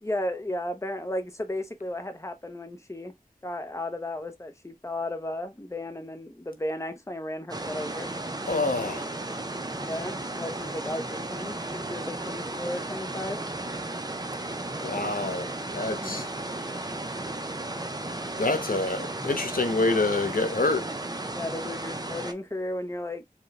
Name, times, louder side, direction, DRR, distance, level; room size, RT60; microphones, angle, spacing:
voice 1, 0.0-3.1 3.4-8.1 9.8-13.4 16.0-16.3 21.3-23.2, left 1 dB, 20° left, 0.8 m, -34 dB
sound 1, 7.5-22.3, right 2 dB, 25° right, 0.6 m, -34 dB
voice 2, 8.5-9.2 14.8-16.3 18.4-20.9, left 2 dB, 80° left, 0.8 m, -27 dB
4.6 x 2.3 x 3.2 m
wide cardioid pair, 40°, 14 cm